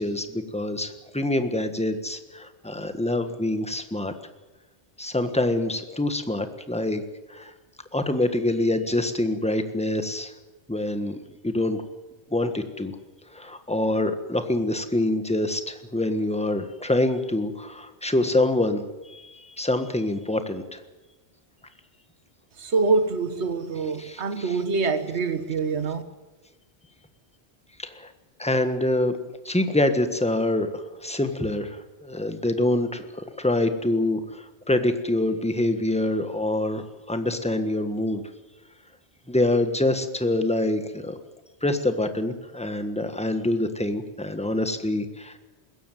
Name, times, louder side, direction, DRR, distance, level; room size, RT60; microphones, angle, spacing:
voice 1, 0.0-4.1 5.0-7.0 7.3-7.5 7.9-10.3 10.7-11.2 11.4-11.8 12.3-12.9 13.3-20.8 24.0-24.6 27.8-28.1 28.4-29.1 29.4-38.2 39.3-41.2 41.6-45.4, left 1 dB, 5° left, 1.4 m, -26 dB
voice 2, 22.6-26.0, right 4 dB, 75° right, 1.6 m, -25 dB
21.0 x 16.5 x 9.3 m
omnidirectional pair, 1.1 m